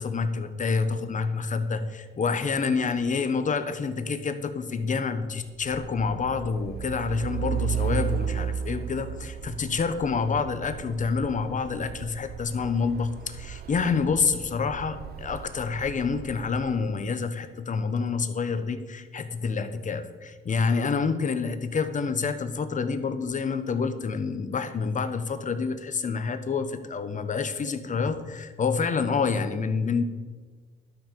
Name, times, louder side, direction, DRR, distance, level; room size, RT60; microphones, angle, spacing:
voice 1, 0.0-30.0, left 5 dB, 40° left, 9 dB, 1.1 m, -28 dB
Truck, 5.6-17.0, right 9 dB, 55° right, 0.6 m, -35 dB
11.5 x 5.9 x 6.9 m, 1.4 s
cardioid pair, 90°, 20 cm